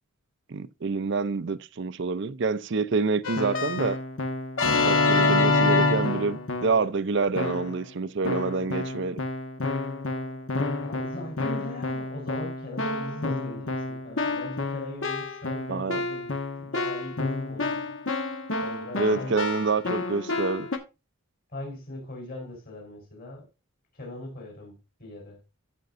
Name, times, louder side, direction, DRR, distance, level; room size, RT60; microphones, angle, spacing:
voice 1, 0.5-4.0 4.9-9.2 15.7-16.0 19.0-20.7, right 4 dB, 55° right, 0.5 m, -27 dB
Keyboard (musical), 3.2-6.9 7.4-7.9 8.2-20.8, left 3 dB, 60° left, 1.2 m, -28 dB
voice 2, 10.8-16.3 16.6-17.8 18.6-19.4 21.5-23.5 23.9-25.4, left 1 dB, 45° left, 4.2 m, -40 dB
14.5 x 5.2 x 2.5 m
head